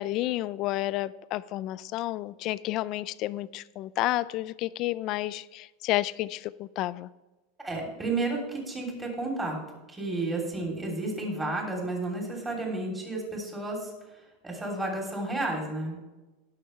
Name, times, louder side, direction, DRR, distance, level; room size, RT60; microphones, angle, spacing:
voice 1, 0.0-7.1, left 16 dB, 45° left, 18 dB, 0.4 m, -31 dB
voice 2, 7.6-9.6 9.9-13.9 14.4-16.0, right 2 dB, 10° right, -1 dB, 3.2 m, -31 dB
19.0 x 6.7 x 3.3 m, 1.1 s
supercardioid pair, 150°, 0 cm